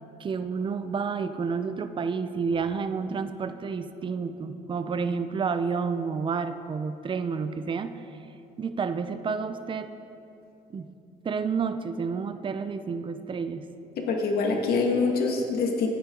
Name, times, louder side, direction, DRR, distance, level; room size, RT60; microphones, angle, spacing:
voice 1, 0.2-8.0 8.6-9.9 10.7-10.9 11.2-13.6, right 5 dB, 30° right, 10 dB, 0.6 m, -30 dB
voice 2, 14.0-15.9, left 4 dB, 70° left, 1 dB, 1.8 m, -25 dB
15.0 x 9.7 x 3.8 m, 2.9 s
cardioid pair, 110°, 17 cm